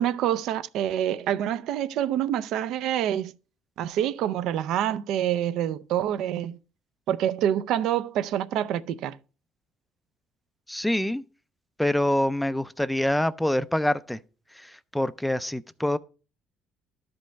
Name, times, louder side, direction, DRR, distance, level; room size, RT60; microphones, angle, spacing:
voice 1, 0.0-3.3 3.8-6.6 7.1-9.2, right 11 dB, 70° right, 0.4 m, -26 dB
voice 2, 10.7-11.2 11.8-14.2 14.5-16.0, left 1 dB, 5° left, 0.3 m, -26 dB
12.5 x 5.3 x 3.3 m
cardioid pair, 130°, 0 cm